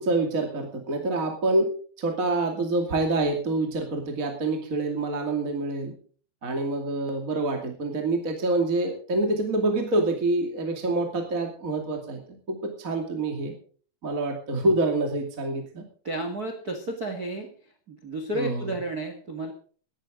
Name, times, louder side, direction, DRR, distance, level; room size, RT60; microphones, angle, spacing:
voice 1, 0.0-1.7 2.0-5.9 6.4-12.2 12.5-13.5 14.0-15.8 18.3-18.7, right 2 dB, 25° right, 3 dB, 1.9 m, -26 dB
voice 2, 16.0-17.5 17.9-19.5, right 1 dB, 55° right, 6 dB, 1.0 m, -32 dB
18.0 x 13.5 x 3.8 m, 0.43 s
omnidirectional pair, 5.1 m